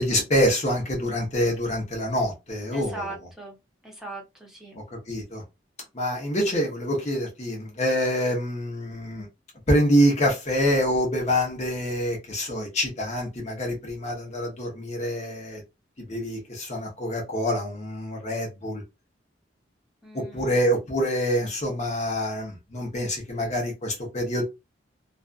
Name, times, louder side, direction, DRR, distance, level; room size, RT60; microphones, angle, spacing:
voice 1, 0.0-3.1 4.7-5.4 5.9-9.3 9.7-15.6 16.0-18.8 20.1-24.4, equal, 40° left, 0.8 m, -26 dB
voice 2, 2.7-3.6 3.8-4.8 20.0-20.6, right 2 dB, ahead, 0.9 m, -39 dB
2.5 x 2.2 x 2.4 m
head